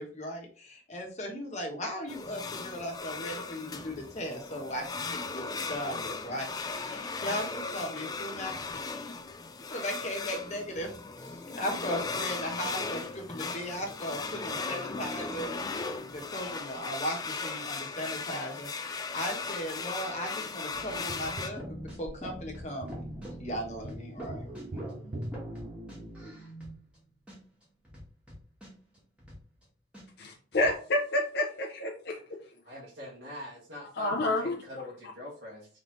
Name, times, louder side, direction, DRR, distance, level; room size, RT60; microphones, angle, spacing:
voice 1, 0.0-9.0 9.7-10.9 11.2-15.5 16.1-24.8, equal, 40° left, 1.2 m, -37 dB
sound 1, 2.1-21.5, left 4 dB, 20° left, 0.3 m, -37 dB
sound 2, 20.7-27.0 27.3-27.4 27.6-29.6 29.9-30.0 30.3-30.7, right 1 dB, 5° right, 1.5 m, -44 dB
Tap, 21.1-26.4 29.0-29.1, right 1 dB, 60° right, 0.6 m, -43 dB
voice 2, 30.2-32.4 34.0-34.6, left 1 dB, 60° left, 0.7 m, -29 dB
voice 3, 32.6-35.7, left 1 dB, 85° right, 1.4 m, -44 dB
3.9 x 3.3 x 3.1 m
head